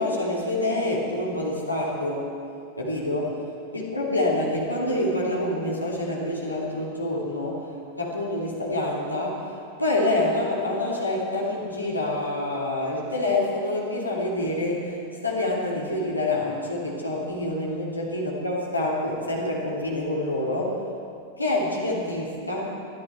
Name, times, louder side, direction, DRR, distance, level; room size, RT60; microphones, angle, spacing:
voice 1, 0.0-2.3 2.8-3.5 3.7-15.0 15.2-20.8 21.4-22.8, left 1 dB, 85° left, -4 dB, 3.0 m, -27 dB
23.0 x 13.0 x 4.5 m, 2.5 s
figure-of-eight pair, 90°, 0 cm